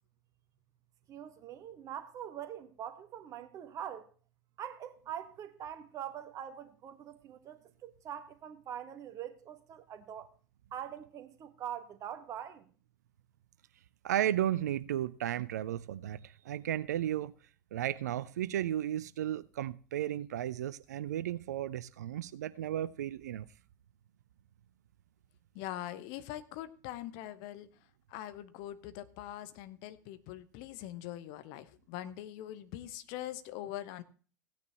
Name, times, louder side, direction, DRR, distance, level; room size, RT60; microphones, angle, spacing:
voice 1, 1.1-4.1 4.6-10.3 10.7-12.6, right 9 dB, 35° right, 1.5 m, -43 dB
voice 2, 14.0-17.3 17.7-23.5, right 12 dB, 65° right, 0.5 m, -34 dB
voice 3, 25.5-27.7 28.1-34.0, left 13 dB, 50° left, 1.0 m, -43 dB
16.5 x 9.5 x 2.9 m
figure-of-eight pair, 80°, 10 cm